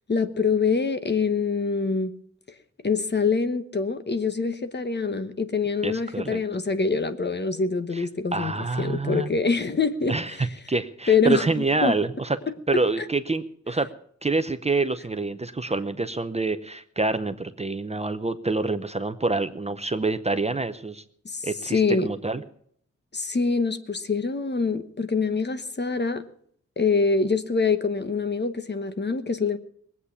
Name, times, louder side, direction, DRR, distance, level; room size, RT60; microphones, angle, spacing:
voice 1, 0.1-2.1 2.8-10.5 11.1-11.5 11.8-11.9 13.0-13.1 21.2-22.1 23.1-26.2 26.8-29.6, left 4 dB, 35° left, 10 dB, 1.1 m, -25 dB
voice 2, 5.8-6.4 7.9-8.0 8.3-9.3 10.1-12.4 12.7-13.9 14.2-21.0 21.4-22.4, right 3 dB, 20° right, 10 dB, 0.7 m, -26 dB
20.5 x 8.4 x 7.1 m, 0.64 s
wide cardioid pair, 140°, 30 cm